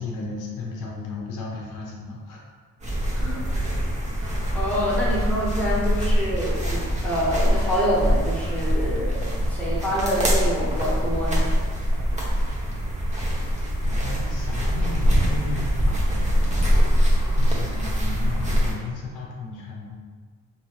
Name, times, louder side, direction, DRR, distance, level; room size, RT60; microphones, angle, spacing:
voice 1, 0.0-2.5 13.8-16.2 17.3-20.0, left 3 dB, 85° left, -2 dB, 0.7 m, -34 dB
sound 1, 2.8-18.7, equal, 25° right, 0.8 m, -23 dB
voice 2, 4.2-11.5, equal, 5° left, -8 dB, 1.2 m, -27 dB
2.8 x 2.7 x 2.9 m, 1.5 s
cardioid pair, 90°, 30 cm